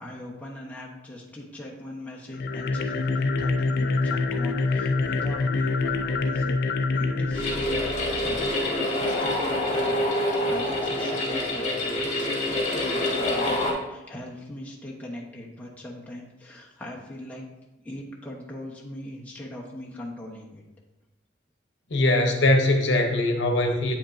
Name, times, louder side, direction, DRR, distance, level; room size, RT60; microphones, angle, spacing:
voice 1, 0.0-6.6 6.9-7.8 8.2-17.5 17.8-20.6, left 1 dB, 10° left, -3 dB, 0.9 m, -40 dB
sound 1, 2.3-8.6, left 3 dB, 55° left, 0.4 m, -26 dB
sound 2, 7.3-13.7, left 1 dB, 40° left, 1.7 m, -26 dB
voice 2, 21.9-24.0, left 1 dB, 75° left, 4 dB, 0.9 m, -21 dB
8.4 x 5.2 x 2.6 m, 1.0 s
head